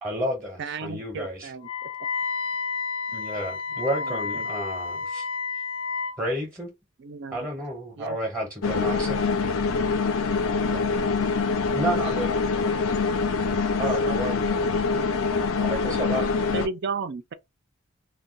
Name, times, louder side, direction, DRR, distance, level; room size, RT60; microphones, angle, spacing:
voice 1, 0.0-1.5 3.1-5.3 6.2-6.7 7.3-9.2 11.7-12.4 13.8-14.6 15.6-16.3, right 1 dB, 10° right, 0.7 m, -31 dB
voice 2, 0.6-1.9 4.0-4.5 7.0-7.5 8.0-8.2 10.7-10.9 16.5-17.3, right 5 dB, 50° right, 0.3 m, -34 dB
Wind instrument woodwind instrument, 1.6-6.2, left 5 dB, 25° left, 0.4 m, -31 dB
sound 1, 8.6-16.7, left 4 dB, 70° left, 0.5 m, -25 dB
voice 3, 11.3-13.3 13.5-15.1 15.9-16.6, left 3 dB, 85° left, 1.1 m, -45 dB
2.2 x 2.2 x 3.7 m
head